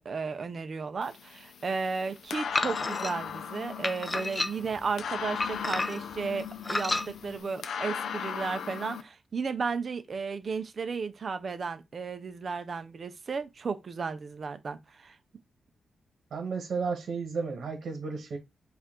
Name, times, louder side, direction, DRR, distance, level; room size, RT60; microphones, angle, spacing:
voice 1, 0.0-15.2, right 5 dB, 40° right, 0.6 m, -34 dB
sound 1, 1.0-9.0, left 7 dB, 75° left, 0.5 m, -38 dB
sound 2, 2.5-3.1 3.8-4.8 5.4-6.1 6.6-7.1, left 2 dB, 20° left, 0.4 m, -30 dB
voice 2, 16.3-18.4, right 5 dB, 60° right, 1.2 m, -33 dB
4.6 x 2.5 x 3.7 m
wide cardioid pair, 145°, 0 cm